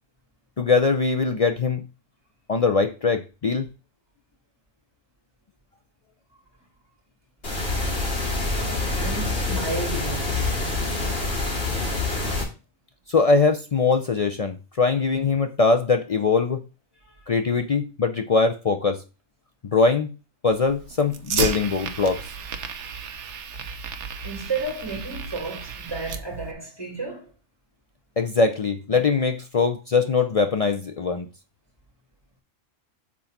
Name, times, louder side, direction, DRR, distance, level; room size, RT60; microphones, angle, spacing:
voice 1, 0.6-1.8 2.5-3.7 13.1-16.6 17.3-19.0 19.7-20.1 20.4-22.2 28.2-31.3, left 4 dB, 70° left, 0.3 m, -22 dB
sound 1, 7.4-12.4, left 2 dB, 55° left, 2.8 m, -26 dB
voice 2, 8.4-10.6 17.1-17.2 24.2-27.3, right 3 dB, 20° right, 2.4 m, -33 dB
Fire, 20.5-26.5, right 6 dB, 65° right, 1.1 m, -33 dB
6.1 x 3.9 x 5.8 m
omnidirectional pair, 1.4 m